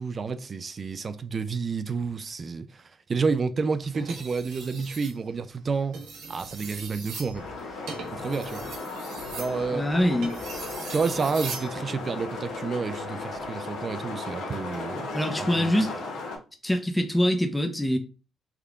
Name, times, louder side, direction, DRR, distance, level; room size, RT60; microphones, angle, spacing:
voice 1, 0.0-2.8 3.1-6.0 6.3-7.4 7.7-7.8 8.1-8.7 9.3-9.9 10.9-15.1 15.4-15.7, right 4 dB, 40° right, 0.3 m, -30 dB
sound 1, 3.9-5.2 5.8-11.7 13.2-13.4, right 4 dB, 85° right, 1.0 m, -40 dB
sound 2, 7.3-16.4, left 3 dB, 80° left, 1.0 m, -36 dB
voice 2, 9.7-10.3 15.1-15.9 16.6-18.0, equal, 5° left, 0.6 m, -24 dB
3.6 x 2.2 x 3.6 m
cardioid pair, 90°, 0 cm